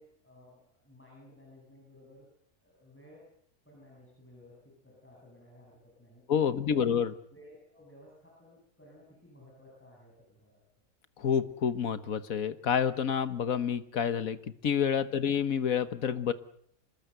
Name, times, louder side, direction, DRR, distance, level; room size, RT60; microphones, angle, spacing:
voice 1, 0.0-3.3 3.6-6.9 7.3-10.6 15.1-15.3, left 1 dB, 5° left, -3 dB, 8.0 m, -56 dB
voice 2, 6.3-7.1 11.2-14.4 14.6-16.3, left 7 dB, 65° left, 12 dB, 1.7 m, -28 dB
26.0 x 21.0 x 8.1 m, 0.67 s
omnidirectional pair, 1.6 m